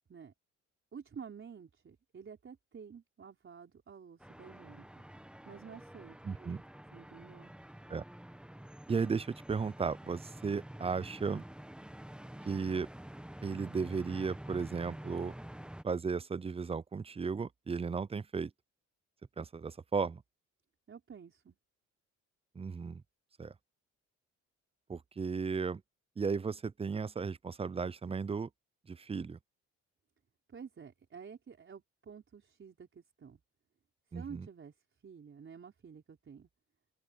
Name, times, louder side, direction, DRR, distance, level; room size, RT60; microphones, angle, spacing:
voice 1, 0.9-5.1 5.5-6.2 6.9-7.5 20.9-21.6 30.5-33.4 34.1-34.7 35.0-36.5, right 6 dB, 40° right, 4.2 m, -50 dB
sound 1, 4.2-15.8, right 1 dB, 5° right, 1.1 m, -48 dB
voice 2, 6.2-6.6 7.9-8.0 8.9-11.4 12.4-12.9 13.4-15.3 15.8-18.5 19.4-20.2 22.6-23.0 23.4-23.5 24.9-25.8 26.2-28.5 28.9-29.4 34.1-34.5, right 5 dB, 20° right, 0.5 m, -35 dB
open air
cardioid pair, 90°, 30 cm